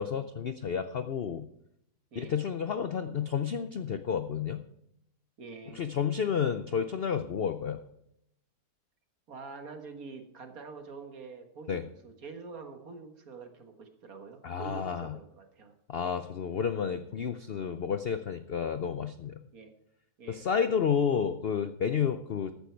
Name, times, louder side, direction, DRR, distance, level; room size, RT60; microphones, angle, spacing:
voice 1, 0.0-1.5 2.2-4.6 5.7-7.8 11.7-11.8 14.4-15.2 15.9-19.4 20.3-22.5, left 7 dB, 70° left, 10 dB, 0.5 m, -31 dB
voice 2, 2.1-2.4 5.4-5.8 9.3-15.7 16.0-16.2 19.5-19.7 20.2-20.5, right 4 dB, 55° right, 5 dB, 1.9 m, -46 dB
14.0 x 9.2 x 4.6 m, 0.78 s
omnidirectional pair, 1.8 m